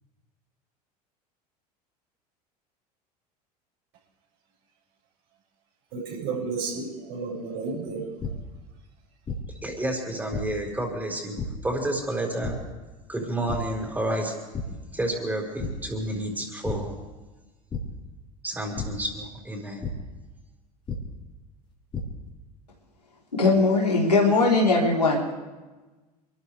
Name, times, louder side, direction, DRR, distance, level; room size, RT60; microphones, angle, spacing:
voice 1, 5.9-8.1, right 4 dB, 50° right, -4 dB, 7.0 m, -32 dB
sound 1, 8.2-8.3 9.2-9.4 10.3-10.4 11.4-11.5 12.4-12.5 13.5-13.6 14.0-14.2 14.5-14.6 15.6-15.7 16.6-16.8 17.7-17.8 18.7-18.8 19.8-19.9 20.9-21.0 21.7-22.0, left 6 dB, 25° left, 4.3 m, -31 dB
voice 2, 9.6-11.4 11.6-12.6 13.1-14.3 14.9-16.9 18.4-19.9, right 1 dB, 10° right, 0 dB, 5.6 m, -30 dB
voice 3, 23.3-25.2, left 3 dB, 85° left, -3 dB, 3.9 m, -20 dB
28.5 x 13.5 x 3.5 m, 1.2 s
figure-of-eight pair, 75°, 20 cm